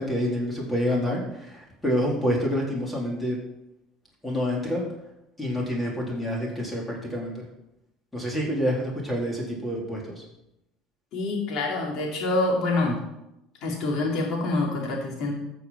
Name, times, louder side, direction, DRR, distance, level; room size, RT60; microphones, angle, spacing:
voice 1, 0.0-3.4 4.2-4.8 5.4-7.4 8.1-10.2, equal, 10° left, -2 dB, 4.1 m, -27 dB
voice 2, 11.1-13.0 13.6-15.3, left 2 dB, 60° left, -1 dB, 4.3 m, -26 dB
13.5 x 7.0 x 6.0 m, 0.87 s
supercardioid pair, 95°, 0 cm